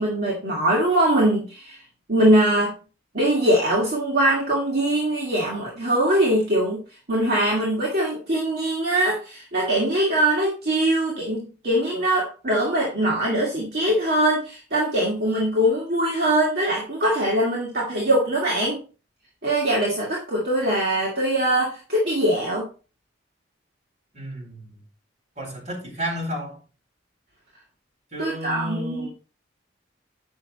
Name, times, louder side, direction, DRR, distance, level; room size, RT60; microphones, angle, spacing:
voice 1, 0.0-1.8 2.1-2.7 3.1-6.8 7.1-18.8 19.4-22.7 28.2-29.1, right 1 dB, 55° right, -5 dB, 2.2 m, -22 dB
voice 2, 24.1-24.8 25.4-26.6 28.1-29.1, equal, 40° right, -2 dB, 4.0 m, -32 dB
9.4 x 6.0 x 4.2 m, 0.36 s
head